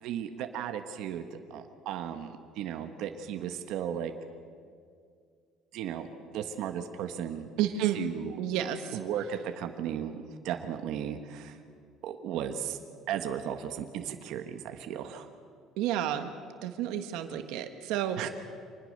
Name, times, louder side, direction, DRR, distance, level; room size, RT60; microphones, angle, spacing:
voice 1, 0.0-4.1 5.7-6.1 6.3-7.5 7.9-8.4 8.9-11.6 12.0-12.8 13.1-15.3 18.2-18.3, right 9 dB, 65° right, 6 dB, 1.4 m, -35 dB
voice 2, 7.6-8.0 8.4-9.0 15.8-16.3 16.6-18.2, right 11 dB, 80° right, 7 dB, 1.4 m, -30 dB
25.5 x 20.0 x 6.7 m, 2.2 s
cardioid pair, 165°, 0 cm